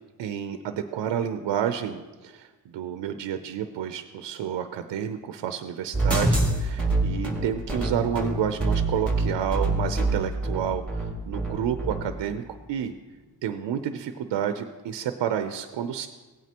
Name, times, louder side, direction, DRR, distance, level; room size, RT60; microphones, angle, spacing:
voice 1, 0.2-12.4 12.7-12.9 13.4-16.1, right 9 dB, 90° right, 8 dB, 0.7 m, -30 dB
sound 1, 5.9-12.0, right 2 dB, ahead, 2.0 m, -25 dB
16.5 x 9.2 x 2.9 m, 1.2 s
cardioid pair, 110°, 42 cm